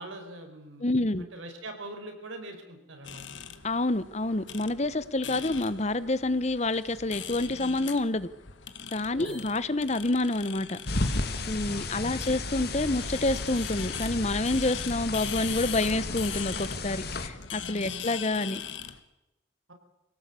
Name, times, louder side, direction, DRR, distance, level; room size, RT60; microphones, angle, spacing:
voice 1, 0.0-3.2 9.1-9.4 11.6-12.2 17.9-18.0 19.7-19.8, right 1 dB, 85° right, 5 dB, 4.9 m, -43 dB
voice 2, 0.8-1.2 3.6-8.3 8.9-10.8 11.5-18.6, left 2 dB, 35° left, 15 dB, 0.9 m, -28 dB
sound 1, 3.0-19.0, left 7 dB, 75° left, 1.7 m, -41 dB
sound 2, 9.2-10.4, left 4 dB, 5° right, 6.3 m, -52 dB
sound 3, 10.8-17.3, left 2 dB, 50° left, 2.0 m, -33 dB
24.5 x 17.5 x 8.4 m, 0.97 s
head